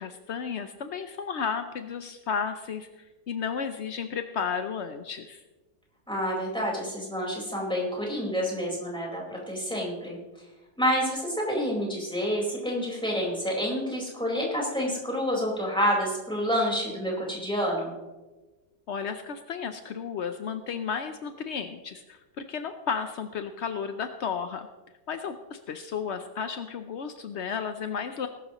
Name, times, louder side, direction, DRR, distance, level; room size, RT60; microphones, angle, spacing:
voice 1, 0.0-5.4 18.9-24.7 25.1-28.3, left 6 dB, 70° left, 8 dB, 0.6 m, -33 dB
voice 2, 6.1-9.2 9.5-10.2 10.8-17.9, equal, ahead, -4 dB, 4.4 m, -28 dB
19.5 x 12.5 x 3.0 m, 1.2 s
omnidirectional pair, 2.0 m